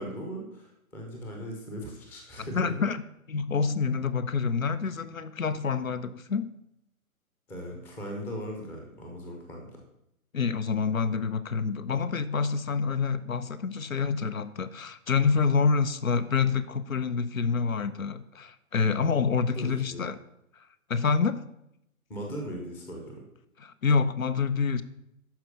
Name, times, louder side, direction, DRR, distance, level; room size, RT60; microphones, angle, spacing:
voice 1, 0.0-2.7 7.5-9.8 19.5-20.1 22.1-23.2, equal, 5° left, 1 dB, 0.7 m, -38 dB
voice 2, 2.4-3.0 3.3-6.5 10.3-20.2 20.6-21.5 23.6-24.8, left 5 dB, 65° left, 14 dB, 0.8 m, -27 dB
12.0 x 4.7 x 6.5 m, 0.79 s
figure-of-eight pair, 125°, 43 cm